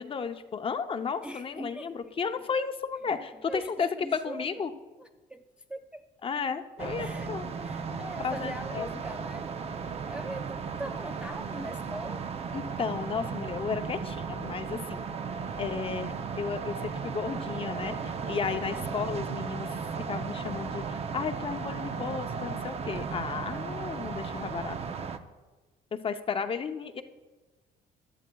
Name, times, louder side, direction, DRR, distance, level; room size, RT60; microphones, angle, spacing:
voice 1, 0.0-4.7 6.2-7.4 8.2-8.9 12.5-15.0 15.5-19.8 20.1-25.1 25.9-27.0, left 6 dB, 30° left, 8 dB, 0.7 m, -33 dB
voice 2, 1.2-2.1 3.5-4.6 5.0-6.0 6.8-7.3 7.6-9.5 10.0-12.2 18.8-19.1, right 1 dB, 5° right, 6 dB, 0.3 m, -41 dB
sound 1, 6.8-25.2, right 5 dB, 35° right, 0.6 m, -35 dB
17.0 x 11.0 x 2.3 m, 1.3 s
cardioid pair, 110°, 17 cm